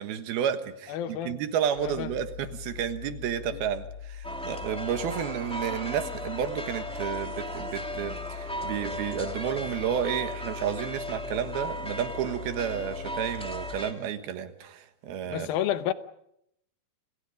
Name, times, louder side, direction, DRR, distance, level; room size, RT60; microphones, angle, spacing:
voice 1, 0.0-15.5, right 9 dB, 85° right, 9 dB, 3.4 m, -31 dB
voice 2, 0.9-1.4 1.8-2.1 3.5-3.6 15.3-15.9, left 11 dB, 80° left, 11 dB, 2.8 m, -30 dB
sound 1, 1.8-13.7, left 9 dB, 45° right, 6.9 m, -42 dB
sound 2, 4.2-13.9, equal, ahead, 1.8 m, -37 dB
29.5 x 27.0 x 5.2 m, 0.75 s
omnidirectional pair, 4.2 m